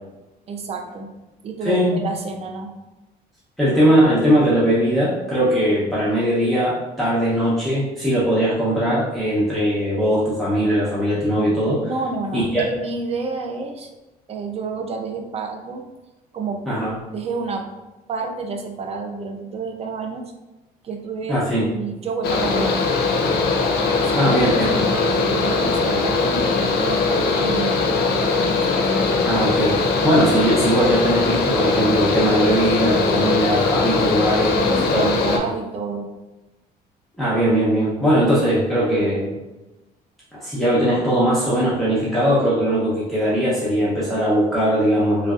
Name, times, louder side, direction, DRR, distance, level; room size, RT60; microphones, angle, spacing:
voice 1, 0.5-1.1 1.4-2.7 11.9-13.9 14.3-15.8 16.3-16.6 17.1-17.7 18.1-20.3 20.8-22.9 23.8-24.3 24.6-28.6 34.1-34.2 34.5-36.1, right 4 dB, 35° right, 4 dB, 0.5 m, -29 dB
voice 2, 1.6-2.0 3.6-11.8 12.3-12.6 16.7-16.9 21.3-21.7 24.1-24.9 29.2-29.8 30.0-34.5 34.9-35.1 37.2-39.3 40.3-45.3, equal, ahead, -9 dB, 0.7 m, -20 dB
Mechanical fan, 22.2-35.4, left 4 dB, 70° left, 0.5 m, -20 dB
3.1 x 2.5 x 2.4 m, 1.1 s
cardioid pair, 110°, 17 cm